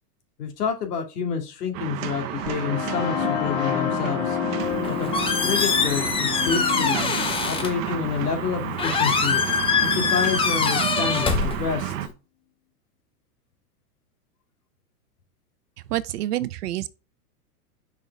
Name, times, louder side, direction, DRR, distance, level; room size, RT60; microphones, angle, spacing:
voice 1, 0.4-4.4 4.9-5.1 5.5-7.1 7.4-9.4 9.8-11.9, left 6 dB, 75° left, 2.5 m, -28 dB
sound 1, 1.7-12.1, right 13 dB, 55° right, 1.1 m, -31 dB
sound 2, 2.2-10.1, left 13 dB, 45° left, 0.7 m, -31 dB
Squeak, 4.6-12.1, left 5 dB, 10° left, 0.8 m, -25 dB
voice 2, 15.9-16.9, right 14 dB, 75° right, 0.8 m, -27 dB
5.6 x 5.0 x 3.4 m
hypercardioid pair, 130°, 47 cm